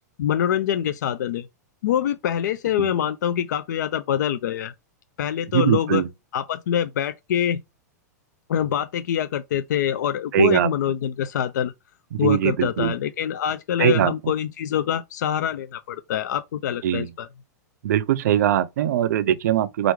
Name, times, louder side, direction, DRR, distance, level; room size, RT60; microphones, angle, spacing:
voice 1, 0.2-1.5 1.8-4.7 5.2-6.0 6.3-7.6 8.5-11.7 12.2-17.3, left 10 dB, 75° left, 0.4 m, -25 dB
voice 2, 5.5-6.1 10.3-10.7 12.1-12.9 13.8-14.1 16.8-17.1 17.8-19.9, right 11 dB, 70° right, 0.5 m, -21 dB
4.6 x 2.5 x 3.1 m
hypercardioid pair, 120°, 9 cm